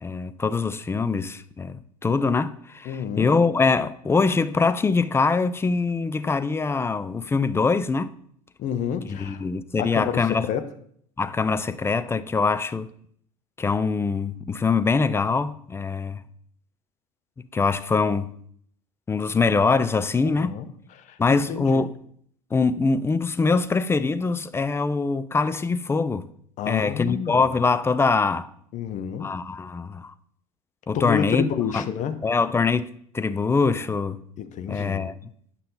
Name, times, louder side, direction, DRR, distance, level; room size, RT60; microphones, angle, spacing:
voice 1, 0.0-8.1 9.1-10.5 11.2-12.9 13.6-16.2 17.5-18.4 19.1-20.6 21.2-21.9 22.5-26.3 26.7-28.5 29.2-30.1 30.9-31.5 31.7-31.9 32.2-34.2 34.7-35.2, left 4 dB, 15° left, 0.4 m, -23 dB
voice 2, 2.8-3.3 8.6-9.4 9.8-10.7 20.4-20.7 21.0-21.9 26.6-27.5 28.7-29.4 30.9-32.2 34.4-35.1, left 8 dB, 40° left, 0.8 m, -29 dB
9.5 x 5.6 x 3.9 m
figure-of-eight pair, 75°, 18 cm